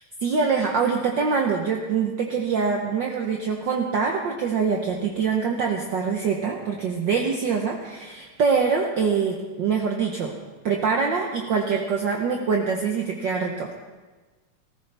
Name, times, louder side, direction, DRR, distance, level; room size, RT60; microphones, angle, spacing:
voice 1, 0.2-10.4 10.6-13.7, right 5 dB, 70° right, 1 dB, 1.1 m, -24 dB
18.0 x 14.5 x 3.4 m, 1.3 s
omnidirectional pair, 3.3 m